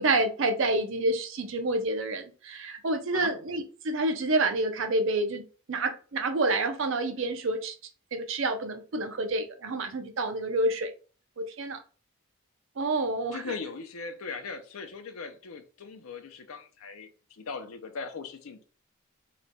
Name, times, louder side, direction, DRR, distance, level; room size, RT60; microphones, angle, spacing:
voice 1, 0.0-5.4 5.7-7.7 8.1-10.9 11.4-11.8 12.8-13.4, right 2 dB, 65° right, 0.5 m, -28 dB
voice 2, 13.3-18.6, left 4 dB, 80° left, 0.5 m, -39 dB
3.0 x 2.2 x 3.9 m
head